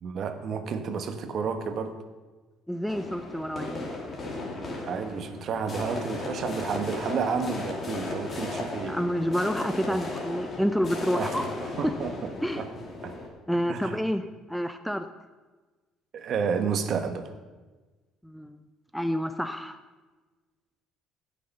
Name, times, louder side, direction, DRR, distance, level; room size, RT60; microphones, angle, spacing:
voice 1, 0.0-1.9 4.8-8.9 9.9-10.0 11.1-12.3 12.6-12.7 13.0-13.2 13.7-14.0 16.1-17.3, right 6 dB, 50° right, 8 dB, 1.2 m, -31 dB
voice 2, 2.7-3.9 8.8-11.5 11.8-11.9 12.4-12.6 13.5-14.2 14.5-15.0 18.2-18.6 18.9-19.8, equal, ahead, 9 dB, 0.5 m, -28 dB
sound 1, 2.9-13.3, left 2 dB, 30° left, 2.6 m, -36 dB
16.0 x 6.7 x 5.4 m, 1.3 s
cardioid pair, 115°, 0 cm